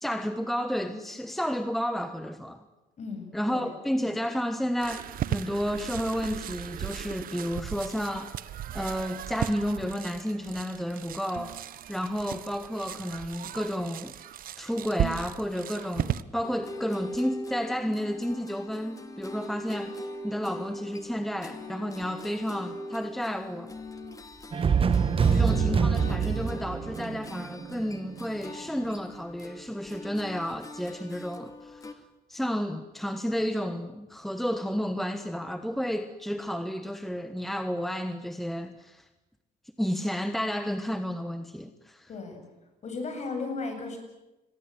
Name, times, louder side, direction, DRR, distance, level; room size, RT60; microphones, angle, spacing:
voice 1, 0.0-2.6 3.3-8.3 8.7-11.6 11.9-14.1 14.6-23.7 25.3-32.0 32.3-39.1 39.8-42.1, equal, ahead, 1.2 m, -31 dB
voice 2, 3.0-3.7 25.2-25.4 42.1-42.4 42.8-44.0, left 3 dB, 40° left, 7.9 m, -35 dB
sound 1, 4.8-16.2, right 11 dB, 60° right, 1.0 m, -36 dB
sound 2, 16.4-31.9, left 1 dB, 20° left, 2.4 m, -41 dB
sound 3, 24.5-28.4, right 6 dB, 30° right, 1.4 m, -25 dB
29.0 x 22.5 x 7.7 m
cardioid pair, 110°, 17 cm